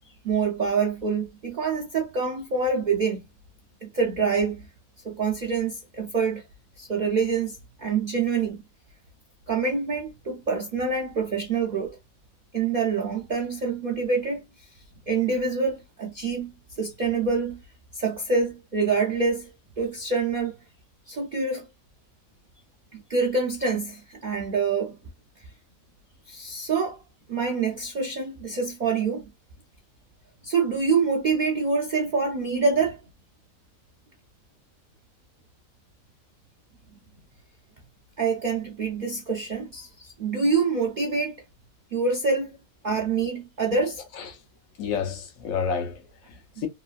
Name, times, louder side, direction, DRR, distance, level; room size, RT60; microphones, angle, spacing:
voice 1, 0.2-3.2 3.8-4.7 5.0-6.4 6.8-8.6 9.5-12.0 12.5-14.7 15.1-17.6 17.9-20.6 21.1-21.7 22.9-25.0 26.3-27.0 27.3-29.3 30.4-33.0 38.2-41.4 41.9-42.6 42.8-44.0 46.6-46.7, right 4 dB, 90° right, 0.4 m, -26 dB
voice 2, 44.8-46.7, left 6 dB, 75° left, 1.1 m, -31 dB
2.9 x 2.4 x 2.2 m
omnidirectional pair, 1.4 m